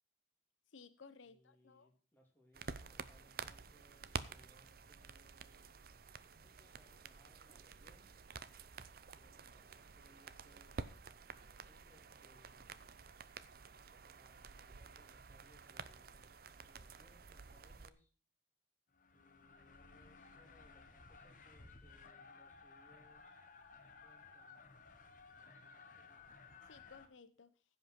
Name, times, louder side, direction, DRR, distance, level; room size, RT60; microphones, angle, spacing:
voice 1, 0.7-1.9 26.7-27.5, left 5 dB, 85° left, 13 dB, 0.7 m, -58 dB
voice 2, 1.2-5.7 6.3-8.1 9.0-10.8 11.3-12.7 14.0-18.1 19.1-23.4 24.0-24.7 25.3-26.4, equal, 10° left, -1 dB, 2.9 m, -69 dB
sound 1, 2.5-17.9, right 5 dB, 50° right, 0.6 m, -51 dB
sound 2, 18.9-27.1, left 4 dB, 45° left, 1.1 m, -58 dB
15.5 x 5.4 x 5.8 m, 0.37 s
head